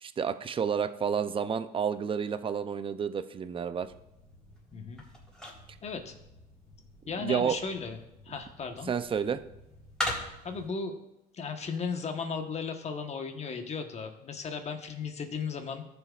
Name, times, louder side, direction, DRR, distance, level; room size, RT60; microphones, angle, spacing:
voice 1, 0.0-3.9 7.2-7.6 8.9-9.4, right 7 dB, 30° right, 11 dB, 0.6 m, -30 dB
sound 1, 3.8-10.7, left 1 dB, 5° left, 3.9 m, -41 dB
voice 2, 4.7-5.0 5.4-5.5 5.8-6.1 7.1-8.9 10.4-11.0 11.3-15.9, left 5 dB, 40° left, 6 dB, 1.3 m, -36 dB
15.5 x 7.1 x 2.5 m, 0.89 s
cardioid pair, 110°, 17 cm